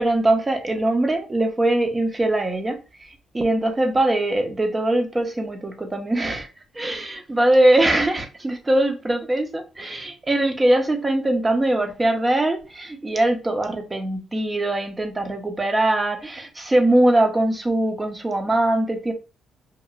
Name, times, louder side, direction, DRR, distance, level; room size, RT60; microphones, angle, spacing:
voice 1, 0.0-3.1 3.3-6.5 6.7-19.1, right 1 dB, 20° right, 0.6 m, -21 dB
2.8 x 2.4 x 2.4 m
cardioid pair, 90°, 0 cm